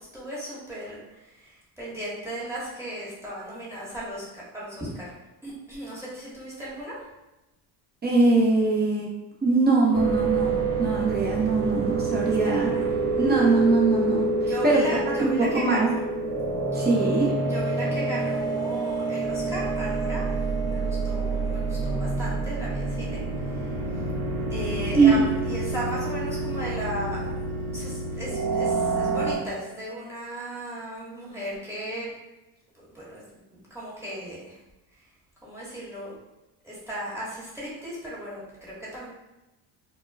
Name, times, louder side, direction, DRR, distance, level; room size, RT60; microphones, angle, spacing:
voice 1, 0.1-1.0 1.8-4.2 4.5-4.9 5.4-7.0 12.1-12.8 14.4-15.9 16.6-16.8 17.5-20.3 20.7-23.2 24.5-27.2 27.7-27.9 28.2-32.1 32.9-33.2 33.7-34.4 35.4-36.1 36.6-39.1, right 1 dB, 5° right, -8 dB, 1.1 m, -36 dB
voice 2, 8.0-9.1 9.4-12.7 13.2-15.9 16.7-17.3 24.9-25.2, right 3 dB, 20° right, -3 dB, 0.7 m, -22 dB
sound 1, 9.9-29.3, right 3 dB, 85° right, 0.8 m, -27 dB
2.2 x 2.1 x 3.3 m, 0.99 s
supercardioid pair, 95°, 46 cm